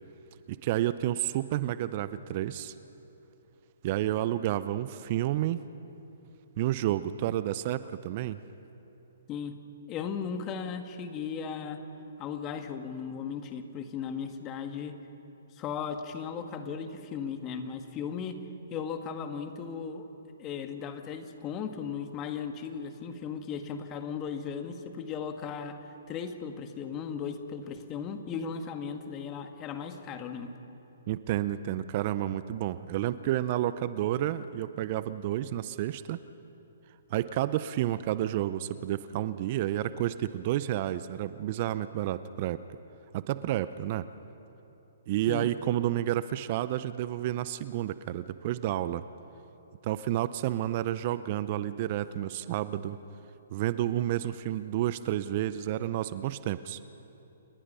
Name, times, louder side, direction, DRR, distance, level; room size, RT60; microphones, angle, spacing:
voice 1, 0.5-2.7 3.8-5.6 6.6-8.4 31.1-36.2 37.1-42.6 43.1-44.0 45.1-49.0 49.8-53.0 53.5-56.8, right 13 dB, 40° right, 14 dB, 0.6 m, -30 dB
voice 2, 9.9-11.8 12.2-15.0 15.6-18.4 18.7-20.1 20.4-30.5 45.3-45.5, left 6 dB, 25° left, 7 dB, 1.7 m, -36 dB
29.0 x 21.0 x 5.6 m, 3.0 s
hypercardioid pair, 130°, 0 cm